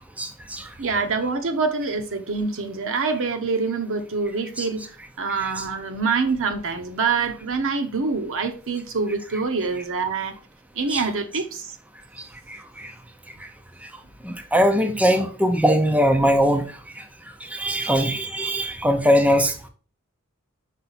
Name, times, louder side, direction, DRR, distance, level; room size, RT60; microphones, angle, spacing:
voice 1, 0.2-0.7 4.6-4.7 5.4-5.7 10.9-11.0 12.5-12.9 14.2-16.6 17.0-17.1 17.4-19.7, equal, 5° right, 0.5 m, -21 dB
voice 2, 0.8-10.4 10.7-11.7, right 4 dB, 65° right, 1.0 m, -25 dB
5.5 x 4.9 x 4.1 m
head